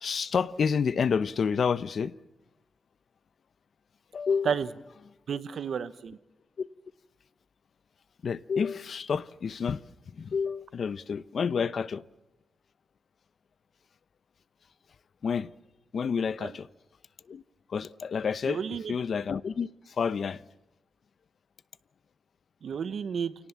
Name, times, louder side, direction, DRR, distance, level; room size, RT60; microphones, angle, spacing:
voice 1, 0.0-2.1 4.1-4.5 6.6-6.7 8.2-9.9 10.1-12.0 15.2-15.5 15.9-16.7 17.3-17.4 17.7-18.6 18.9-20.4, left 6 dB, 65° left, 0.8 m, -29 dB
voice 2, 5.3-6.2 16.4-16.6 18.5-18.9 22.6-23.3, right 7 dB, 75° right, 1.1 m, -31 dB
29.0 x 18.5 x 7.3 m
wide cardioid pair, 105°, 0 cm